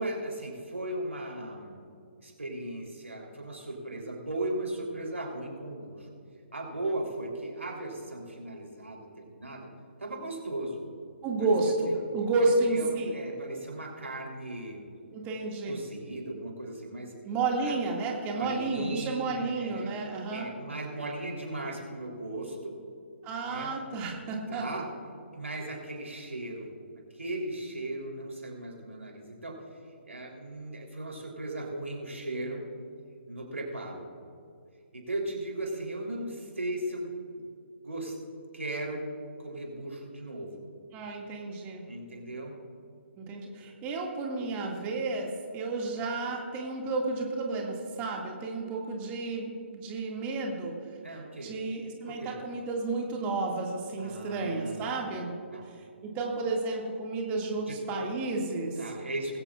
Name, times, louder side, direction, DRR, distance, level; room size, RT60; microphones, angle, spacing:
voice 1, 0.0-1.8 2.2-6.1 6.5-9.7 10.0-10.9 11.9-12.0 12.4-14.8 15.7-17.1 17.7-17.8 18.3-19.9 20.3-22.8 23.4-23.7 24.5-24.9 25.3-26.7 27.1-29.6 30.0-32.6 33.3-34.1 34.9-37.5 37.8-38.2 38.5-39.0 39.4-40.6 41.9-42.6 51.0-51.5 52.0-52.4 54.0-55.0 55.5-55.7 57.7-57.8 58.8-59.4, right 1 dB, 85° right, -1 dB, 3.6 m, -37 dB
voice 2, 11.2-13.2 15.1-15.8 17.2-20.5 23.2-24.6 40.9-41.9 43.2-50.7 51.4-55.3 55.7-58.8, right 3 dB, 25° right, 0 dB, 2.2 m, -31 dB
20.0 x 16.0 x 2.5 m, 2.3 s
figure-of-eight pair, 135°, 7 cm